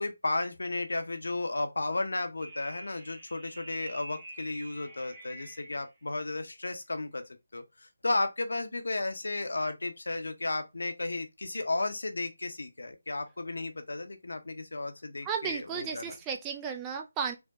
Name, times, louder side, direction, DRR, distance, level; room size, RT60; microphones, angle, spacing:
voice 1, 0.0-7.2 7.5-16.1, left 2 dB, 60° left, 0.7 m, -34 dB
sound 1, 2.4-5.9, right 2 dB, 30° right, 0.9 m, -47 dB
voice 2, 15.2-17.3, right 6 dB, 15° right, 0.3 m, -34 dB
4.6 x 2.2 x 2.7 m
figure-of-eight pair, 155°, 0 cm